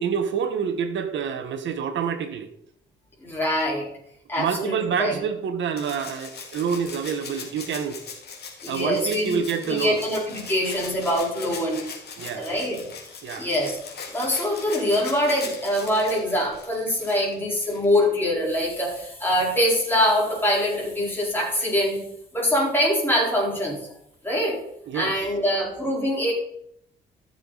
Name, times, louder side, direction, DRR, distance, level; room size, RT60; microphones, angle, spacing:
voice 1, 0.0-2.5 4.4-8.0 8.7-10.0 12.2-12.5 13.2-13.5 24.9-25.1, right 7 dB, 70° right, 8 dB, 1.6 m, -27 dB
voice 2, 3.2-3.9 4.3-5.2 8.6-11.9 12.3-12.9 13.4-13.8 14.1-22.1 22.3-23.8 24.2-24.6 24.9-26.3, equal, 10° left, -4 dB, 4.6 m, -24 dB
Rattle (instrument), 5.8-18.1 19.5-19.6, left 5 dB, 55° left, 2.9 m, -40 dB
13.5 x 7.0 x 4.2 m, 0.73 s
cardioid pair, 90°, 20 cm